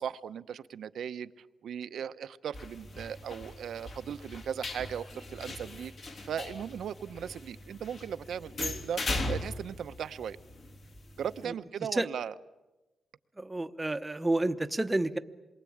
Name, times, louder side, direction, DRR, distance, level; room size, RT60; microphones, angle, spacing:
voice 1, 0.0-5.9 6.2-9.0 9.3-10.4 11.2-12.3, right 8 dB, 80° right, 12 dB, 0.8 m, -37 dB
sound 1, 2.5-11.4, left 2 dB, 50° left, 3.3 m, -39 dB
voice 2, 13.4-15.2, right 2 dB, 15° right, 10 dB, 1.0 m, -30 dB
28.0 x 22.5 x 8.7 m, 1.1 s
wide cardioid pair, 145°, 0 cm